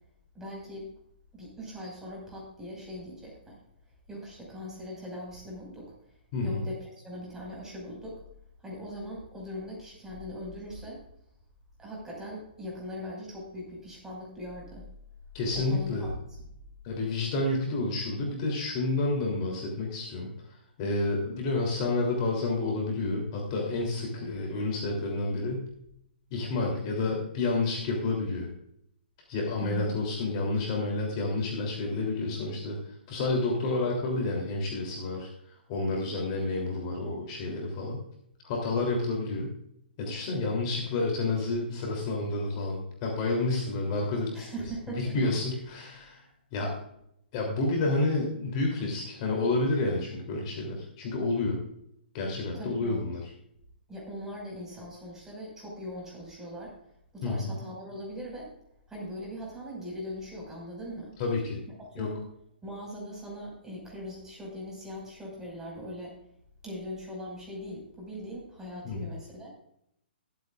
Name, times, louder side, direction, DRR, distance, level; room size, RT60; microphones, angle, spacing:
voice 1, 0.3-0.9 1.3-3.6 4.1-5.9 6.4-8.2 8.6-11.0 11.8-14.9 15.5-16.4 29.6-29.9 44.3-45.2 52.5-53.1 53.9-56.7 57.1-58.5 58.9-61.2 61.8-62.2 62.6-66.2 66.6-69.5, equal, 10° right, -3 dB, 5.5 m, -40 dB
voice 2, 15.3-16.1 16.8-20.3 20.8-25.7 26.3-28.5 29.3-32.8 33.1-35.3 35.7-38.0 38.4-39.5 40.0-44.5 45.0-46.2 46.5-46.8 47.3-51.6 52.1-53.2 57.2-57.5 61.2-61.6 61.9-62.1 68.8-69.1, left 2 dB, 35° left, 0 dB, 3.2 m, -29 dB
21.5 x 8.5 x 2.5 m, 0.74 s
figure-of-eight pair, 130°, 6 cm